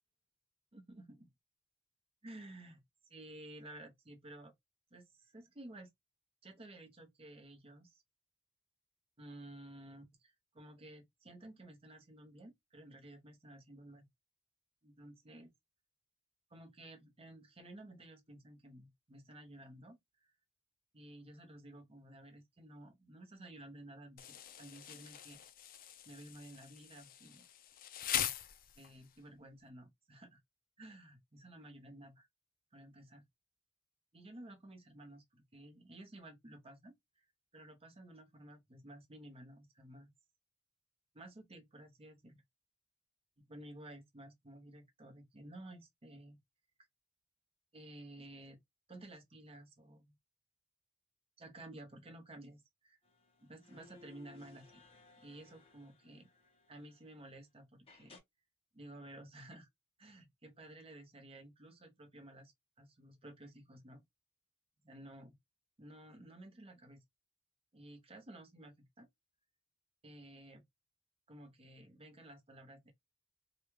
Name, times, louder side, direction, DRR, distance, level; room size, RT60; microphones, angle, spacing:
voice 1, 0.7-1.3 2.2-2.8 3.1-4.5 4.9-5.9 6.4-8.0 9.2-14.1 14.8-15.5 16.5-20.3 20.9-25.4 26.0-27.4 28.8-30.4 30.8-32.3 32.7-33.2 34.1-37.2 37.5-40.1 41.1-42.4 43.4-46.4 47.7-48.6 48.9-50.1 51.4-53.0 53.4-54.8 55.2-56.3 56.7-58.2 58.7-59.7 60.0-64.0 64.8-65.4 65.8-67.0 67.7-69.1 70.0-70.6 71.3-72.9, right 1 dB, 30° right, 0.8 m, -54 dB
Insect, 24.2-29.1, left 10 dB, 45° left, 0.4 m, -42 dB
sound 1, 53.0-57.4 57.9-58.2, left 4 dB, 30° left, 0.9 m, -63 dB
3.3 x 2.3 x 3.1 m
head